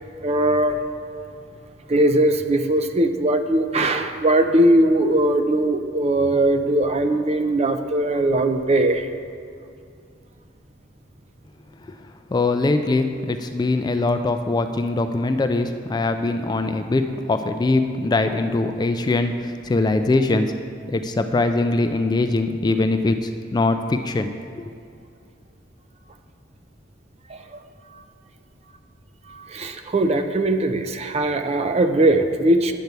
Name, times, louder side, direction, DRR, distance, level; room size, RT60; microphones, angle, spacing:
voice 1, 0.2-0.8 1.9-9.1 27.3-27.6 29.3-32.7, right 1 dB, 35° right, 8 dB, 0.5 m, -20 dB
voice 2, 12.3-20.5 20.9-24.3, left 2 dB, 25° left, 7 dB, 0.3 m, -22 dB
9.3 x 4.5 x 6.7 m, 2.4 s
head